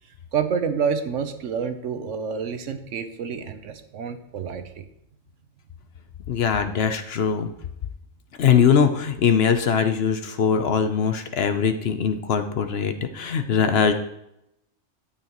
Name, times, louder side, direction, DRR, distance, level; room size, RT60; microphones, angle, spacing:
voice 1, 0.3-4.8, right 6 dB, 70° right, 9 dB, 1.1 m, -28 dB
voice 2, 6.3-7.5 8.4-13.9, left 7 dB, 60° left, 8 dB, 0.8 m, -21 dB
12.5 x 8.5 x 3.0 m, 0.82 s
omnidirectional pair, 1.3 m